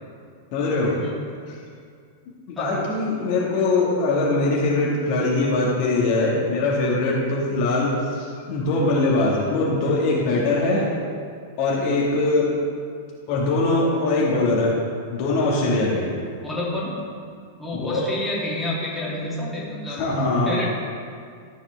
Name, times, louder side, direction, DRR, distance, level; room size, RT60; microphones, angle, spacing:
voice 1, 0.5-1.0 1.5-1.6 2.5-10.9 11.6-12.6 13.3-14.8 15.1-16.1 17.7-18.0 20.0-20.6, left 2 dB, 45° left, -4 dB, 1.9 m, -22 dB
voice 2, 2.6-2.9 16.4-17.0 17.6-20.0 20.5-20.7, left 1 dB, 10° left, -6 dB, 2.5 m, -29 dB
13.5 x 8.0 x 3.5 m, 2.2 s
figure-of-eight pair, 95°, 0 cm